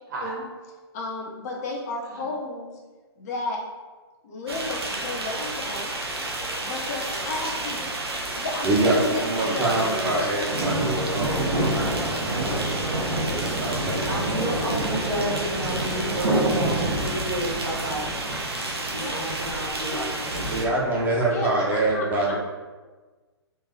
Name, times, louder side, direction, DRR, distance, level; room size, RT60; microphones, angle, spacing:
voice 1, 0.9-2.7 3.2-3.6 4.2-5.9 6.6-9.7 10.1-10.3 18.9-19.2 19.9-20.0 21.3-21.7 21.9-22.0, left 2 dB, 35° left, -2 dB, 0.6 m, -33 dB
sound 1, 4.5-20.6, right 1 dB, 60° right, 0.8 m, -28 dB
voice 2, 8.6-14.3 20.5-22.3, right 2 dB, 10° right, -5 dB, 0.7 m, -26 dB
voice 3, 14.0-18.1 18.9-21.0, right 1 dB, 45° right, -4 dB, 1.2 m, -31 dB
3.7 x 2.6 x 2.7 m, 1.3 s
figure-of-eight pair, 125°, 14 cm